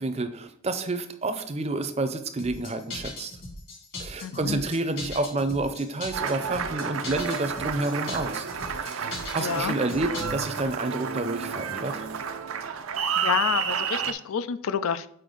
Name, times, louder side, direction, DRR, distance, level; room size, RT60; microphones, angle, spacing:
voice 1, 0.0-3.3 4.0-8.5 8.8-12.1, right 2 dB, 30° right, 9 dB, 0.5 m, -29 dB
sound 1, 2.4-10.7, left 2 dB, 65° left, 2.3 m, -39 dB
voice 2, 4.2-4.6 9.4-9.8 13.2-15.1, left 7 dB, 85° left, 13 dB, 0.4 m, -28 dB
Applause, 6.1-14.1, right 7 dB, 80° right, 0.5 m, -31 dB
6.6 x 4.4 x 3.9 m, 0.70 s
head